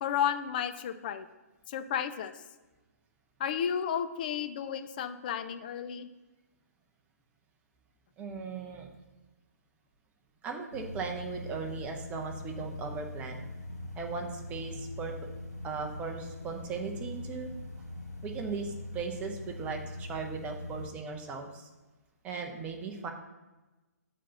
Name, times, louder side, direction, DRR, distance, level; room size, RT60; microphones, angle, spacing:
voice 1, 0.0-1.3 1.7-2.3 3.4-6.1, left 8 dB, 30° left, 10 dB, 0.4 m, -32 dB
voice 2, 8.2-8.9 10.4-13.5 14.0-15.1 15.6-17.5 18.2-21.7 22.2-23.1, right 5 dB, 15° right, 2 dB, 0.8 m, -38 dB
sound 1, 10.7-20.9, left 1 dB, 80° left, 1.9 m, -42 dB
7.6 x 4.0 x 6.7 m, 1.1 s
figure-of-eight pair, 130°, 9 cm